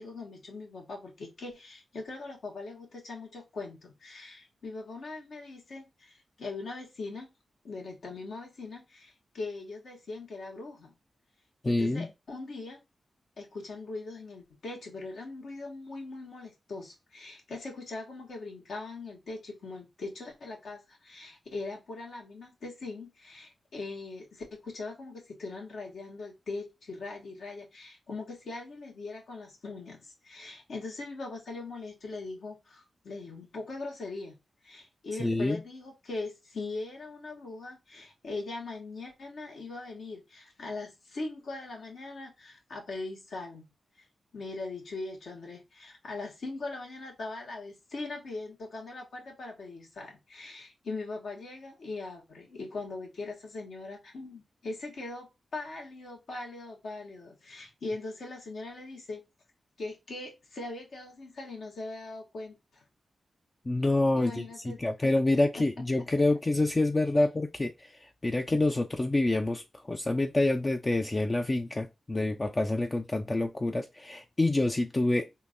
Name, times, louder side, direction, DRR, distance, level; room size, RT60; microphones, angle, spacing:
voice 1, 0.0-7.3 7.6-10.9 11.6-12.8 13.4-34.3 34.6-43.7 44.0-44.1 44.3-59.2 59.8-62.8 64.1-64.8 65.3-65.4 67.2-67.3, left 3 dB, 75° left, 1.6 m, -41 dB
voice 2, 11.6-12.1 35.2-35.6 63.7-75.3, left 2 dB, 30° left, 0.4 m, -27 dB
3.7 x 2.6 x 2.5 m
cardioid pair, 50°, 0 cm